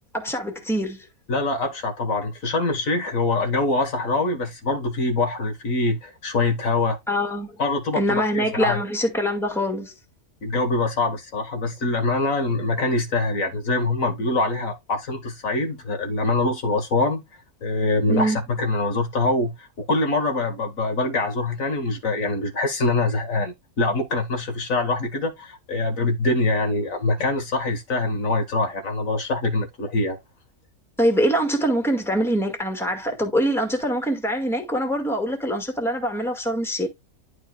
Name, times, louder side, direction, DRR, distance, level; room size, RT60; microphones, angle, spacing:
voice 1, 0.1-1.0 7.1-7.5 8.0-9.9 18.1-18.4 31.0-36.9, equal, ahead, 1.9 m, -24 dB
voice 2, 1.3-7.0 7.6-8.8 10.4-17.2 17.6-30.2, left 2 dB, 65° left, 1.8 m, -24 dB
11.0 x 4.8 x 2.3 m
omnidirectional pair, 1.5 m